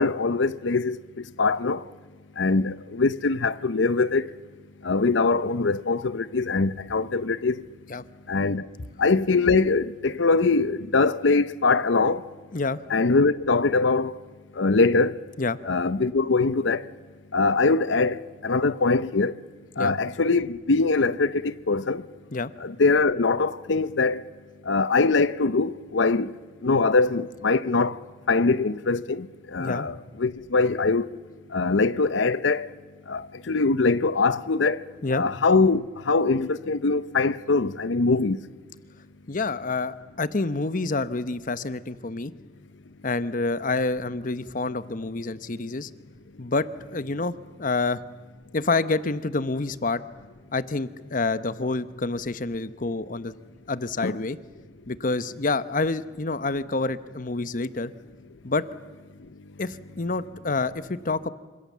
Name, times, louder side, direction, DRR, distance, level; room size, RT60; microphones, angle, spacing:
voice 1, 0.0-1.8 2.4-4.3 4.8-7.6 8.3-8.7 9.0-12.3 12.9-14.2 14.5-15.2 15.7-16.9 17.3-19.4 19.8-22.1 22.6-24.2 24.6-26.3 26.6-28.0 28.3-31.1 31.5-32.7 33.1-34.8 35.2-38.5 54.0-54.2, left 3 dB, 80° left, 0.7 m, -23 dB
voice 2, 39.3-42.3 43.0-45.9 46.4-48.0 48.5-50.0 50.5-53.3 53.7-54.4 54.9-57.9 58.4-58.6 59.6-61.3, left 3 dB, 45° left, 0.9 m, -28 dB
27.0 x 25.5 x 7.4 m
head